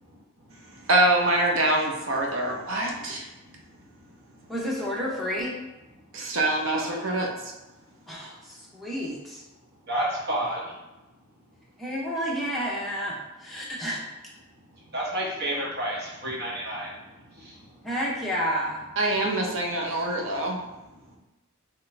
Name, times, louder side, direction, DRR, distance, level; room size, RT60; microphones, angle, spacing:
voice 1, 0.0-0.9 3.1-4.5 6.1-6.4 6.7-7.1 9.8-10.8 14.6-17.9 20.0-21.2, right 1 dB, 50° right, -4 dB, 1.2 m, -34 dB
voice 2, 0.9-3.3 6.1-7.5 19.0-20.6, right 1 dB, 65° right, 0 dB, 0.7 m, -25 dB
voice 3, 4.5-5.5 8.1-9.4 11.8-14.0 17.8-18.8, equal, ahead, -6 dB, 0.8 m, -30 dB
3.9 x 3.1 x 3.3 m, 1.0 s
head